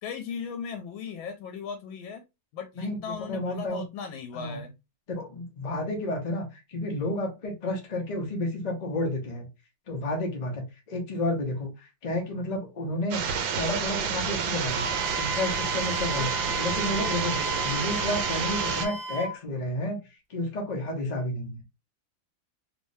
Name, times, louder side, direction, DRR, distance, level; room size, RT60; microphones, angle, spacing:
voice 1, 0.0-2.2 2.5-4.7 16.1-16.3 20.9-21.2, left 6 dB, 85° left, 6 dB, 1.3 m, -37 dB
voice 2, 2.7-3.8 4.3-4.6 5.1-9.5 9.9-13.2 13.6-14.9 15.2-20.0 20.3-21.6, left 1 dB, 60° left, 1 dB, 0.4 m, -31 dB
sound 1, 13.1-18.9, right 6 dB, 75° right, 1.2 m, -29 dB
Wind instrument woodwind instrument, 14.7-19.4, right 1 dB, 60° right, 0.4 m, -34 dB
3.3 x 2.7 x 3.1 m, 0.25 s
omnidirectional pair, 2.1 m